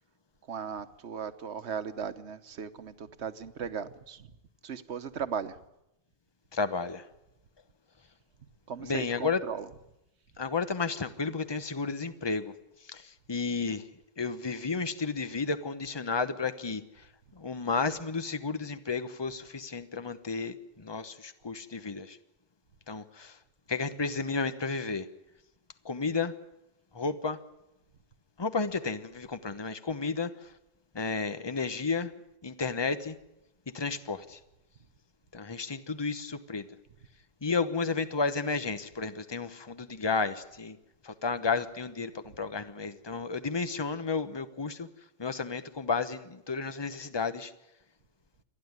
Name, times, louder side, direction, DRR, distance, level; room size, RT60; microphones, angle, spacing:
voice 1, 0.5-4.3 4.6-5.6 8.7-9.7 42.3-42.4, right 7 dB, 90° right, 12 dB, 1.3 m, -37 dB
voice 2, 6.5-7.0 8.8-9.4 10.4-12.5 12.9-13.0 13.3-13.8 14.2-16.8 17.4-22.2 22.9-23.3 23.7-25.0 25.8-26.3 26.9-27.4 28.4-30.3 30.9-32.1 32.4-33.1 33.7-34.4 35.3-36.7 37.4-40.8 41.0-44.9 45.2-47.5, left 4 dB, 25° left, 11 dB, 1.0 m, -32 dB
28.0 x 11.0 x 9.6 m, 0.88 s
omnidirectional pair, 1.1 m